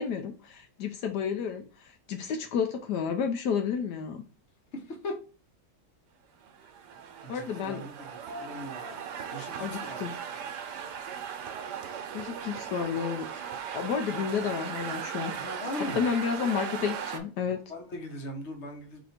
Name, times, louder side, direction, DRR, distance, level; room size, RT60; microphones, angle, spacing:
voice 1, 0.0-4.2 7.3-7.9 9.6-10.1 12.1-13.3 13.7-15.3 15.8-17.6, left 7 dB, 80° left, 1.2 m, -31 dB
sound 1, 6.4-17.2, right 7 dB, 85° right, 1.3 m, -38 dB
voice 2, 8.4-9.0 9.3-10.0 15.4-16.0 17.7-19.0, left 1 dB, 45° left, 1.2 m, -38 dB
4.2 x 2.9 x 4.1 m
omnidirectional pair, 1.8 m